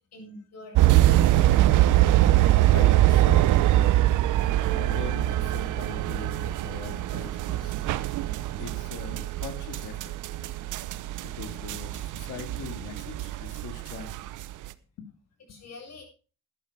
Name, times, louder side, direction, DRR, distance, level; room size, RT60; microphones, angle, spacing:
voice 1, 0.1-1.4 8.5-8.6 15.5-16.0, left 2 dB, 60° left, 2 dB, 7.7 m, -45 dB
sound 1, 0.7-14.7, right 14 dB, 85° right, 0.8 m, -23 dB
voice 2, 2.7-3.9 4.4-7.7 8.0-10.5 11.2-14.1 15.0-15.1 15.5-15.6, left 6 dB, 85° left, 9 dB, 2.2 m, -42 dB
12.5 x 11.0 x 4.8 m, 0.36 s
cardioid pair, 90°, 30 cm